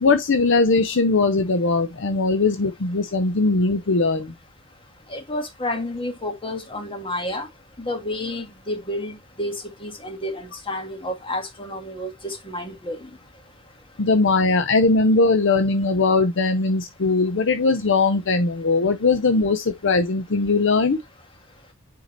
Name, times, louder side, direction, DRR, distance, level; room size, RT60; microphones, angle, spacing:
voice 1, 0.0-4.3 14.0-21.0, left 3 dB, 65° left, 0.7 m, -20 dB
voice 2, 5.1-7.5 7.8-9.6 9.8-13.0, left 1 dB, 25° left, 1.7 m, -30 dB
6.6 x 4.7 x 3.1 m
head